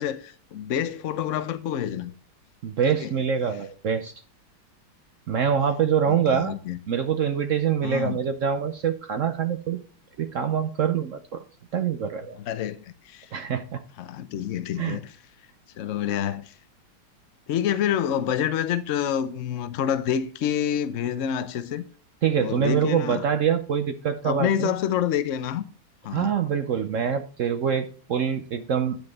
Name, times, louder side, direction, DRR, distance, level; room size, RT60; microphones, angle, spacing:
voice 1, 0.0-2.1 2.9-3.1 6.1-6.8 7.8-8.2 12.4-12.8 13.0-13.3 14.0-15.1 15.8-16.5 17.5-21.8 22.4-23.2 24.2-25.7 26.0-26.3, left 9 dB, 85° left, 0.6 m, -27 dB
voice 2, 2.6-4.1 5.3-6.5 6.9-9.8 10.2-11.4 11.7-12.4 13.3-13.8 14.8-15.0 22.2-24.7 26.1-29.0, right 8 dB, 75° right, 0.7 m, -25 dB
9.7 x 6.8 x 3.9 m
omnidirectional pair, 2.2 m